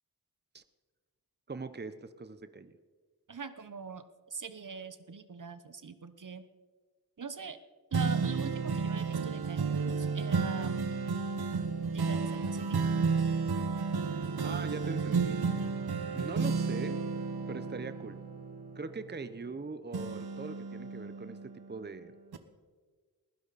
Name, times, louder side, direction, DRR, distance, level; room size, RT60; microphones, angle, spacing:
voice 1, 1.5-2.8 14.4-15.8 16.1-17.0 17.5-18.2 18.7-22.1, right 4 dB, 25° right, 12 dB, 0.9 m, -41 dB
voice 2, 3.3-4.0 4.3-6.4 7.2-7.6 7.9-10.9 11.9-12.9, right 5 dB, 55° right, 11 dB, 1.1 m, -43 dB
sound 1, 7.9-19.6 19.9-21.8 22.3-22.4, right 5 dB, 75° right, 1.3 m, -32 dB
22.0 x 16.0 x 4.2 m, 1.5 s
cardioid pair, 45°, 39 cm